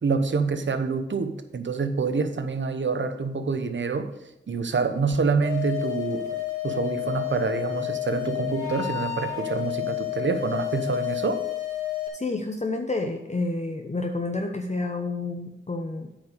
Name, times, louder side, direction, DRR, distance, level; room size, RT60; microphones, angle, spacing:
voice 1, 0.0-4.1 4.5-6.3 6.6-11.4, right 4 dB, 65° right, 9 dB, 1.0 m, -26 dB
sound 1, 5.4-12.1, left 15 dB, 35° right, 3.2 m, -30 dB
voice 2, 12.1-16.1, left 3 dB, 35° left, 3 dB, 1.0 m, -29 dB
8.6 x 5.2 x 6.6 m, 0.88 s
cardioid pair, 45°, 20 cm